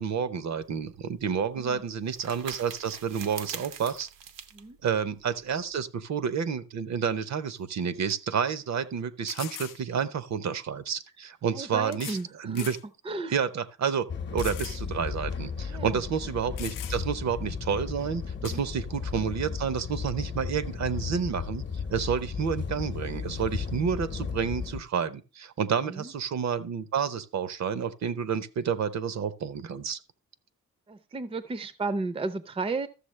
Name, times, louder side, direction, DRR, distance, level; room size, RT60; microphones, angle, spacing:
voice 1, 0.0-4.1 4.8-12.8 13.3-14.1 14.3-30.0, right 7 dB, 55° right, 0.7 m, -30 dB
sound 1, 0.6-5.8, right 8 dB, 80° right, 0.9 m, -44 dB
sound 2, 7.5-7.6 8.1-8.2 9.3-9.8 10.9-11.0 11.9-12.3 12.5-12.8 13.3-13.4 14.4-14.8 15.2-15.3 16.1-16.2 16.6-17.2 18.4-18.6, left 12 dB, 75° left, 0.6 m, -41 dB
voice 2, 11.5-12.7 13.0-13.3 15.7-16.0 18.4-18.6 25.9-26.1 30.9-32.9, right 3 dB, 20° right, 0.5 m, -34 dB
sound 3, 14.1-24.8, left 6 dB, 35° left, 0.8 m, -35 dB
13.0 x 7.0 x 3.2 m
wide cardioid pair, 145°, 32 cm